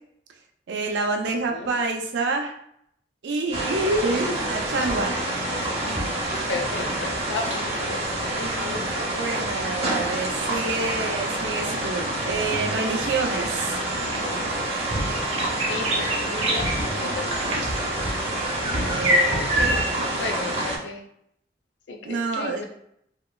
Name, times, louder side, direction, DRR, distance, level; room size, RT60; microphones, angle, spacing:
voice 1, 0.7-2.5 3.2-5.2 9.1-13.8 18.8-19.9 22.0-22.6, right 3 dB, 80° right, 3 dB, 0.4 m, -27 dB
sound 1, 3.5-20.8, right 1 dB, 35° right, 0.6 m, -26 dB
voice 2, 6.5-9.0 15.6-17.5 19.9-21.0 21.9-22.6, left 4 dB, 85° left, 3 dB, 0.4 m, -34 dB
Wind instrument woodwind instrument, 14.0-18.6, right 4 dB, 20° left, 0.5 m, -40 dB
2.8 x 2.2 x 2.2 m, 0.72 s
head